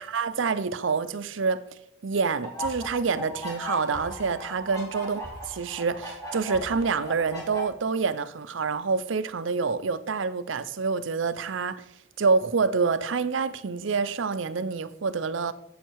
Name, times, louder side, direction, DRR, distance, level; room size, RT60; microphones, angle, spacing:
voice 1, 0.0-1.6 2.0-5.2 5.5-11.8 12.2-15.5, right 5 dB, 75° right, 0.6 m, -27 dB
sound 1, 2.4-7.6, equal, 20° left, 2.9 m, -37 dB
9.0 x 8.2 x 4.7 m
head